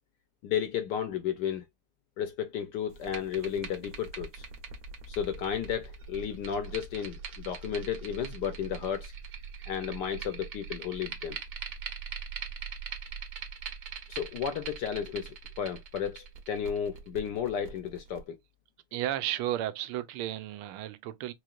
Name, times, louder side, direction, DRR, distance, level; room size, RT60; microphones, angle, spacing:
voice 1, 0.4-1.6 2.2-4.5 5.1-9.1 9.7-11.4 14.1-18.4, left 8 dB, 75° left, 1.0 m, -33 dB
sound 1, 2.9-18.2, right 6 dB, 55° right, 1.4 m, -42 dB
voice 2, 18.9-21.3, right 13 dB, 90° right, 1.5 m, -33 dB
4.8 x 3.1 x 2.3 m
omnidirectional pair, 2.3 m